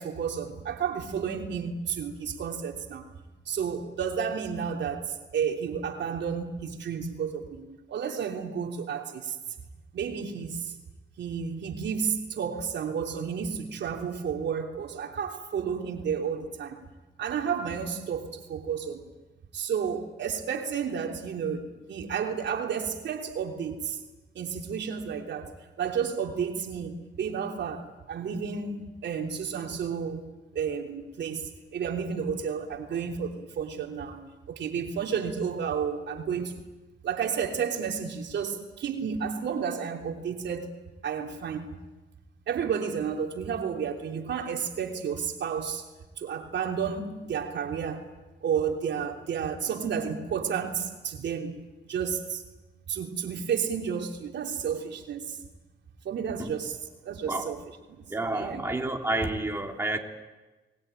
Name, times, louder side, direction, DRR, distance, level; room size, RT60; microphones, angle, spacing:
voice 1, 0.0-3.1 3.4-9.4 9.9-10.8 11.2-16.9 17.2-19.1 19.5-24.0 24.3-30.3 30.5-36.6 37.0-40.7 41.0-41.8 42.5-45.9 46.2-48.0 48.4-51.6 51.9-52.4 52.9-55.4 56.0-56.8 57.0-57.6 58.3-58.6, right 7 dB, 65° right, 3.3 m, -31 dB
voice 2, 58.1-60.0, right 2 dB, 10° right, 3.4 m, -30 dB
29.5 x 21.0 x 9.1 m
cardioid pair, 90°, 20 cm